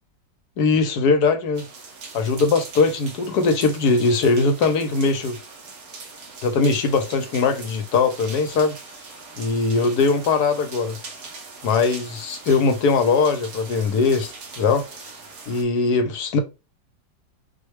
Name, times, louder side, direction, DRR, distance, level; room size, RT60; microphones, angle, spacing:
voice 1, 0.6-1.7 2.1-5.4 6.4-8.8 9.4-11.0 11.6-14.9 15.5-16.4, left 4 dB, 65° left, 1.2 m, -20 dB
sound 1, 1.5-15.6, right 4 dB, 55° right, 1.5 m, -41 dB
6.1 x 2.3 x 3.2 m
omnidirectional pair, 2.0 m